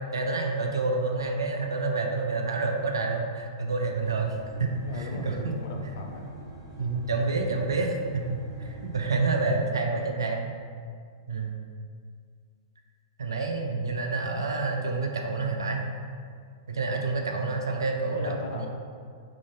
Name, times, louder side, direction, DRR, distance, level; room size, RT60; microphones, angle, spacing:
voice 1, 0.0-4.3 4.6-5.6 6.8-10.5 11.3-11.5 13.2-15.9 16.7-18.7, right 3 dB, 70° right, 2 dB, 0.3 m, -28 dB
sound 1, 3.8-9.5, right 1 dB, 30° left, 1.3 m, -44 dB
voice 2, 4.8-6.3 17.7-18.7, left 1 dB, 55° left, 2 dB, 0.4 m, -39 dB
2.9 x 2.4 x 2.6 m, 2.1 s
figure-of-eight pair, 100°, 2 cm